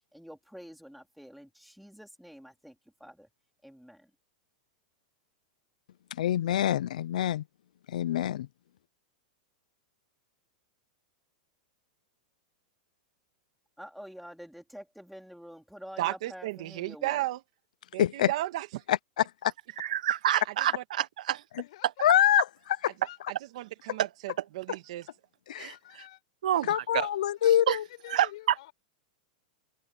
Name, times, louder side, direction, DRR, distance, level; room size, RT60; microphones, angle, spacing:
voice 1, 0.1-2.7 3.0-3.3 3.6-4.1 13.8-17.2, equal, ahead, 3.8 m, -47 dB
voice 2, 6.2-7.4 7.9-8.5 18.0-18.3 18.9-19.0 19.4-19.5 22.0-22.4 25.5-25.8 26.7-27.8, left 11 dB, 75° left, 0.6 m, -25 dB
voice 3, 16.0-17.4 17.9-18.8 20.7-20.8 23.3-25.1, right 16 dB, 50° right, 2.3 m, -34 dB
voice 4, 19.8-21.4 24.0-24.1 25.6-25.7 26.4-26.7 26.9-27.1 27.7-27.8 28.1-28.3, right 11 dB, 70° right, 1.1 m, -27 dB
voice 5, 21.6-22.3 23.0-23.2 25.7-26.2 27.4-28.7, left 16 dB, 50° left, 6.4 m, -49 dB
supercardioid pair, 180°, 4 cm